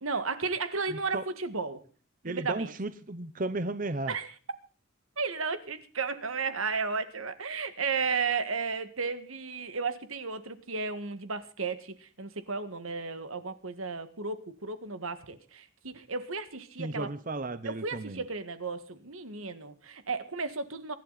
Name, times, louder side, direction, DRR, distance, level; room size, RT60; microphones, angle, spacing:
voice 1, 0.0-1.8 2.3-2.7 4.1-4.3 5.2-17.1 17.6-20.9, right 4 dB, 85° right, 11 dB, 1.8 m, -34 dB
voice 2, 0.9-1.3 2.2-4.2 16.8-18.2, right 2 dB, 40° right, 12 dB, 0.8 m, -34 dB
24.5 x 11.5 x 4.1 m, 0.39 s
head